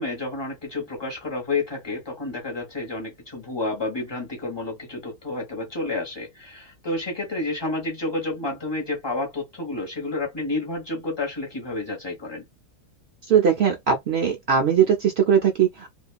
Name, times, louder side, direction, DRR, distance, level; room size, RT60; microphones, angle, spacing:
voice 1, 0.0-12.4, left 2 dB, 20° left, 1.0 m, -30 dB
voice 2, 13.3-15.9, right 7 dB, 75° right, 0.5 m, -20 dB
2.7 x 2.4 x 2.3 m
omnidirectional pair, 1.8 m